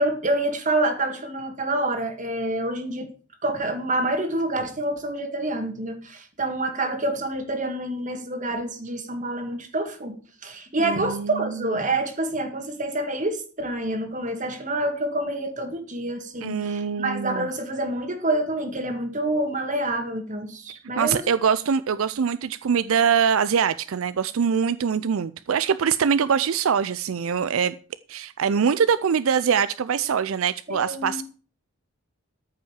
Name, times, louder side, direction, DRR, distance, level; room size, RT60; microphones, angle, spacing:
voice 1, 0.0-3.1 3.4-21.3 30.7-31.2, right 1 dB, 35° right, 2.0 m, -27 dB
voice 2, 10.8-11.7 16.4-17.5 21.0-27.8 28.1-31.2, right 7 dB, 75° right, 0.4 m, -23 dB
13.5 x 5.8 x 7.2 m
head